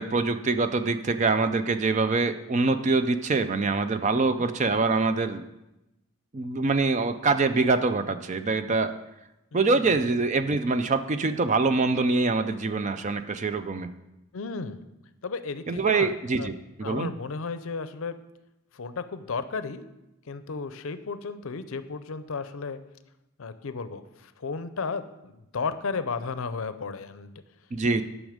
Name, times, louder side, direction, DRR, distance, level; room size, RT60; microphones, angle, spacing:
voice 1, 0.0-5.4 6.3-8.9 9.5-13.9 15.7-16.5 16.8-17.1 27.7-28.0, right 3 dB, 35° right, 10 dB, 0.4 m, -24 dB
voice 2, 4.1-4.5 9.5-9.9 14.3-14.8 15.2-16.5 16.8-18.2 18.7-19.9 20.3-22.8 23.4-27.3, left 4 dB, 70° left, 12 dB, 0.5 m, -34 dB
9.3 x 6.3 x 5.0 m, 0.94 s
head